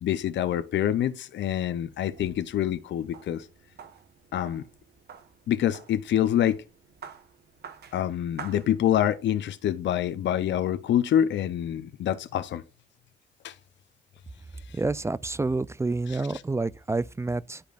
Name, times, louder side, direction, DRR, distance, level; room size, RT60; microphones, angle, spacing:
voice 1, 0.0-3.5 4.3-4.6 5.5-6.6 7.9-12.6 13.4-13.6 14.7-14.8 16.1-16.4, left 10 dB, 65° left, 0.7 m, -26 dB
sound 1, 1.7-9.3, right 6 dB, 55° right, 1.3 m, -48 dB
voice 2, 14.7-17.6, right 3 dB, 15° right, 0.3 m, -28 dB
11.5 x 5.1 x 2.5 m
cardioid pair, 90°, 20 cm